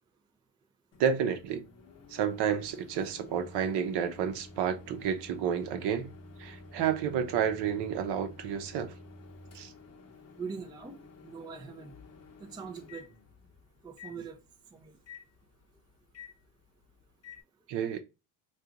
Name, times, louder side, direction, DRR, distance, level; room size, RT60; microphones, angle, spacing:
Microwave oven, 0.9-17.4, left 3 dB, 35° left, 0.8 m, -51 dB
voice 1, 1.0-1.6 2.1-6.1 6.4-8.9 9.5-9.7 17.7-18.0, right 8 dB, 60° right, 0.8 m, -30 dB
voice 2, 10.4-11.0 11.2-11.9 12.4-13.1 13.8-14.4 14.7-15.0, right 5 dB, 10° right, 0.4 m, -42 dB
2.8 x 2.5 x 3.6 m
cardioid pair, 100°, 46 cm